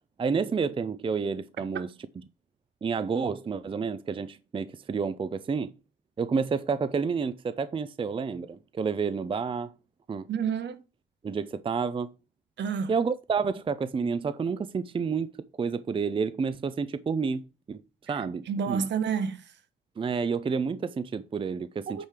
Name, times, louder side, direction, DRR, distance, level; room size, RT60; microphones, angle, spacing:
voice 1, 0.2-1.9 2.8-5.7 6.2-9.7 10.1-10.3 11.2-12.1 12.9-17.8 18.1-18.8 20.0-22.1, right 5 dB, 25° right, 0.5 m, -30 dB
voice 2, 10.3-10.8 12.6-12.9 18.5-19.4 21.9-22.1, right 6 dB, 65° right, 1.0 m, -29 dB
8.9 x 3.3 x 5.8 m
cardioid pair, 90°, 20 cm